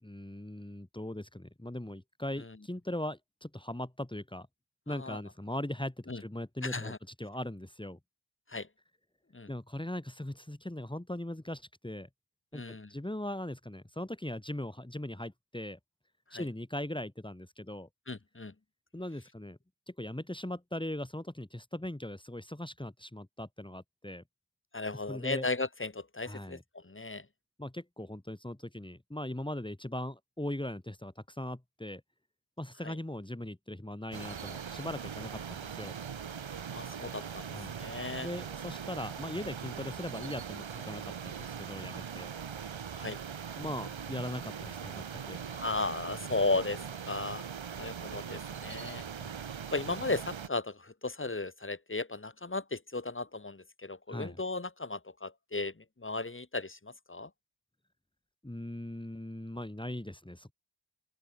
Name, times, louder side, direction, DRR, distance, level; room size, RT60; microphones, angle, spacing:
voice 1, 0.0-4.5 4.9-6.9 7.2-8.0 9.5-12.1 12.5-15.8 16.3-17.9 18.9-19.6 19.9-24.2 25.1-25.5 26.3-26.6 27.6-32.0 32.6-36.0 37.5-37.7 38.2-42.3 43.6-45.4 49.2-49.4 54.1-54.4 58.4-60.5, left 1 dB, 10° left, 4.0 m, -39 dB
voice 2, 4.9-5.2 6.1-6.2 6.6-7.0 8.5-8.7 9.3-9.5 12.5-12.9 16.3-16.5 18.1-18.5 24.7-27.3 32.8-33.0 36.7-38.3 42.9-43.2 45.5-47.5 47.7-49.0 49.7-57.3, left 3 dB, 25° left, 2.5 m, -36 dB
sound 1, 34.1-50.5, right 7 dB, 80° right, 7.8 m, -41 dB
open air
cardioid pair, 50°, 46 cm